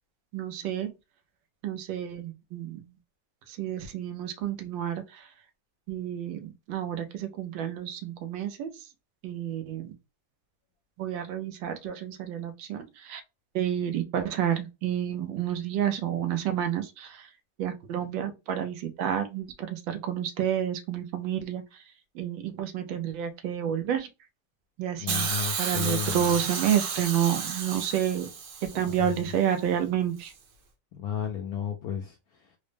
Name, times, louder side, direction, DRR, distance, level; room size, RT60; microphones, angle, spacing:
voice 1, 0.3-0.9 1.6-2.8 3.5-5.3 5.9-8.8 9.2-9.9 11.0-13.2 13.5-17.3 17.6-21.8 22.1-24.1 24.8-25.3 25.6-28.3 28.6-30.3, right 9 dB, 85° right, 1.4 m, -30 dB
voice 2, 25.0-26.3 28.7-29.2 30.9-32.6, left 8 dB, 75° left, 0.8 m, -34 dB
Hiss, 25.1-29.2 30.2-30.3, right 6 dB, 70° right, 1.3 m, -32 dB
3.8 x 2.1 x 3.3 m
omnidirectional pair, 2.1 m